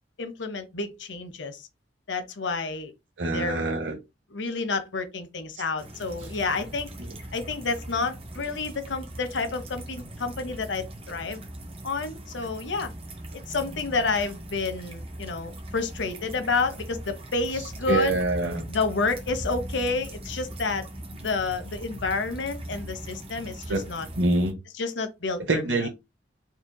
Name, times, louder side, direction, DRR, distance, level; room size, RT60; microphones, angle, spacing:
voice 1, 0.2-1.6 2.1-2.9 3.3-3.8 4.3-6.9 7.3-11.4 11.8-12.9 13.5-18.2 18.7-24.1 24.8-25.9, left 4 dB, 80° left, 0.9 m, -30 dB
voice 2, 3.2-4.0 5.5-5.6 6.2-6.3 17.5-18.6 23.7-23.8 24.2-24.6 25.5-25.9, right 2 dB, 75° right, 0.8 m, -25 dB
sound 1, 5.8-24.5, right 1 dB, 30° right, 0.8 m, -40 dB
4.3 x 3.7 x 2.2 m
head